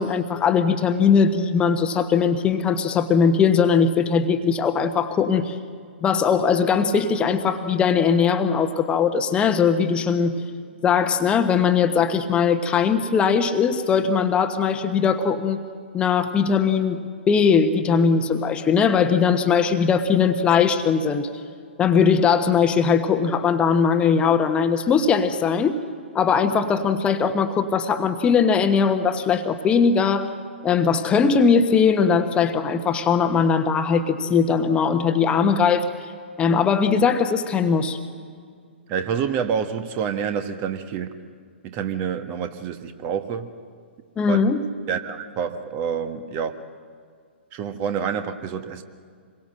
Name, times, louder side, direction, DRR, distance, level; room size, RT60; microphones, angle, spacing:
voice 1, 0.0-5.6 6.0-10.4 10.8-15.6 15.9-21.3 21.8-25.7 26.1-30.3 30.6-36.1 36.4-38.0 44.2-44.6, left 6 dB, 15° left, 8 dB, 1.3 m, -20 dB
voice 2, 38.9-41.1 41.6-43.5 44.3-44.4 44.9-46.6 47.5-48.8, right 7 dB, 30° right, 9 dB, 1.4 m, -27 dB
26.5 x 22.0 x 7.8 m, 2.1 s
figure-of-eight pair, 115°, 6 cm